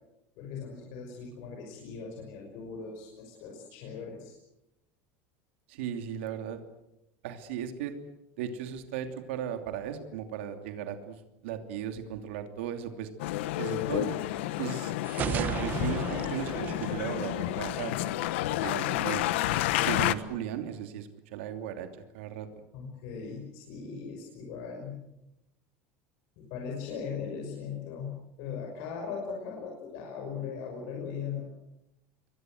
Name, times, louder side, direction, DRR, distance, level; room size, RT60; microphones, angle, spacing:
voice 1, 0.4-4.3 22.7-25.0 26.4-31.5, left 6 dB, 55° left, 0 dB, 6.0 m, -39 dB
voice 2, 5.7-6.6 7.2-7.9 8.4-13.1 13.6-14.2 14.6-14.9 15.3-18.1 18.6-19.2 19.8-21.9 22.1-22.5, right 9 dB, 90° right, 6 dB, 2.9 m, -36 dB
Male speech man speaking, 13.2-20.1, left 15 dB, 85° left, 1.2 m, -30 dB
sound 1, 15.0-17.9, right 9 dB, 30° right, 1.0 m, -35 dB
28.0 x 23.0 x 7.9 m, 0.90 s
cardioid pair, 170°, 6 cm